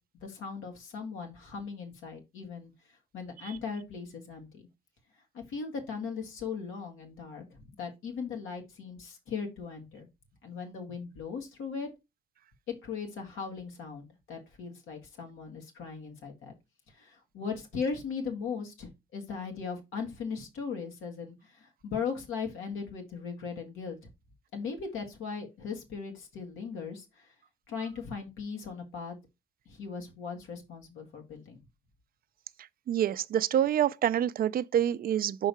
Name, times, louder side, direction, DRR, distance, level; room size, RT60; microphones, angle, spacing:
voice 1, 0.2-2.7 3.1-4.6 5.3-7.4 7.8-10.1 10.4-11.9 12.8-16.5 17.0-24.0 24.5-27.3 27.7-29.2 29.7-31.6, left 5 dB, 85° left, 1.8 m, -38 dB
voice 2, 32.9-35.5, right 10 dB, 50° right, 0.4 m, -27 dB
5.5 x 3.7 x 4.7 m
cardioid pair, 90°, 20 cm